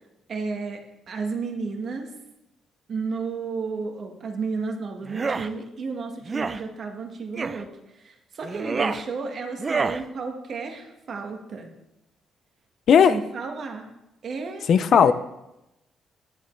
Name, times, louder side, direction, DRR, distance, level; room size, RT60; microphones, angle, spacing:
voice 1, 0.3-2.1 2.9-7.7 7.9-11.7 13.1-13.9 14.2-14.6 14.9-15.1, right 4 dB, 55° right, 4 dB, 1.5 m, -32 dB
sound 1, 5.1-5.5 6.3-6.6 7.4-7.6 8.4-9.0 9.6-10.0, right 4 dB, 35° right, 0.4 m, -27 dB
voice 2, 14.7-15.1, left 7 dB, 60° left, 14 dB, 0.5 m, -15 dB
10.5 x 8.5 x 3.3 m, 0.91 s
cardioid pair, 90°, 0 cm